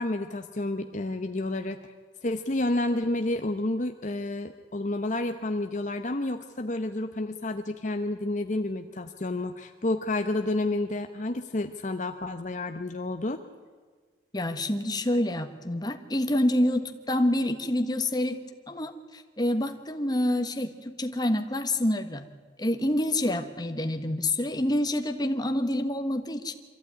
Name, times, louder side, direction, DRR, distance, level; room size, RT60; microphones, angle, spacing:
voice 1, 0.0-1.9 2.2-13.4, left 2 dB, 45° left, 7 dB, 0.9 m, -30 dB
voice 2, 14.3-22.3 22.6-26.5, left 1 dB, 25° left, 7 dB, 1.3 m, -27 dB
24.5 x 15.0 x 9.6 m, 1.5 s
head